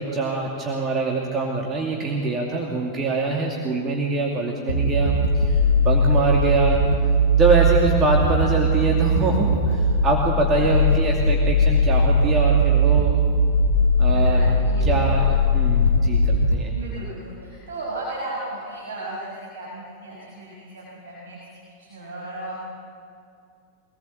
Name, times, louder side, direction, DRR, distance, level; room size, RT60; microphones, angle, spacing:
voice 1, 0.0-6.8 7.3-13.2 14.0-14.4 14.8-16.8, right 3 dB, 25° right, -1 dB, 2.6 m, -24 dB
sound 1, 4.7-16.6, equal, 80° left, 1.1 m, -19 dB
voice 2, 5.9-6.3 10.5-10.8 14.1-15.2 16.8-21.4 21.7-22.6, right 1 dB, 65° right, -6 dB, 5.8 m, -35 dB
24.0 x 19.5 x 7.4 m, 2.3 s
figure-of-eight pair, 90°, 0 cm